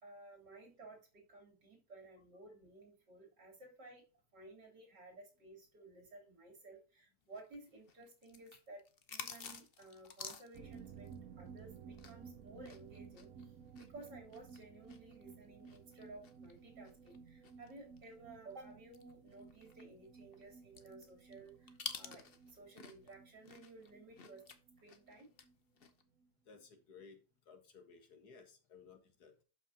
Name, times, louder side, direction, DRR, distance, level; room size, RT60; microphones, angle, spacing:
voice 1, 0.0-4.0 4.3-24.5 24.8-25.3, right 2 dB, 90° right, -1 dB, 4.3 m, -56 dB
sound 1, 7.3-12.3 12.6-18.1 18.5-18.6 18.9-23.2 23.4-25.5 25.8-26.0, left 6 dB, 40° left, 0.9 m, -51 dB
sound 2, 10.5-25.9 26.2-26.3 26.6-26.7, right 6 dB, 60° right, 1.2 m, -56 dB
voice 2, 26.5-27.2 27.5-29.4, left 5 dB, 65° left, 6 dB, 2.1 m, -58 dB
12.0 x 5.7 x 2.9 m, 0.34 s
omnidirectional pair, 1.8 m